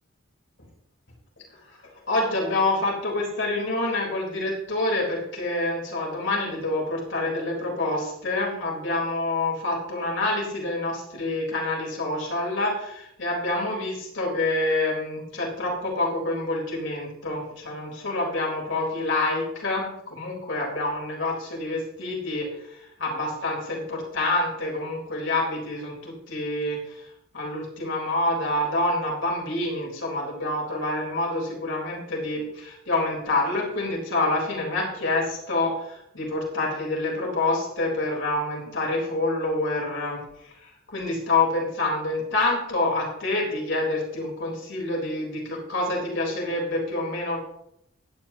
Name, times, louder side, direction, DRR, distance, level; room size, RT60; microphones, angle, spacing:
voice 1, 2.1-27.1 27.3-40.2 40.4-47.4, left 2 dB, 60° left, -2 dB, 4.0 m, -27 dB
16.0 x 11.0 x 2.9 m, 0.78 s
head